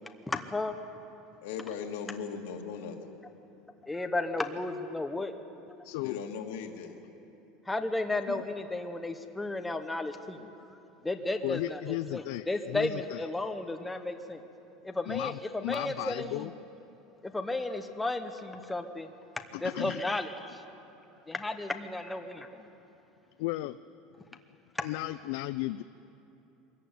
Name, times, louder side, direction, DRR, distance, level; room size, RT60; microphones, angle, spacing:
voice 1, 0.3-0.8 3.8-5.3 7.7-10.5 11.0-14.4 14.8-16.5 17.2-19.1 19.6-20.6 21.3-22.7 24.7-24.8, left 2 dB, 5° left, 6 dB, 0.9 m, -33 dB
voice 2, 1.4-3.0 6.0-7.0, left 6 dB, 85° left, 4 dB, 2.2 m, -38 dB
voice 3, 5.8-6.2 8.3-8.4 11.4-13.2 15.1-16.5 19.5-20.1 23.4-23.8 24.8-25.8, left 17 dB, 70° left, 13 dB, 0.4 m, -35 dB
23.0 x 14.5 x 9.4 m, 2.9 s
cardioid pair, 165°, 0 cm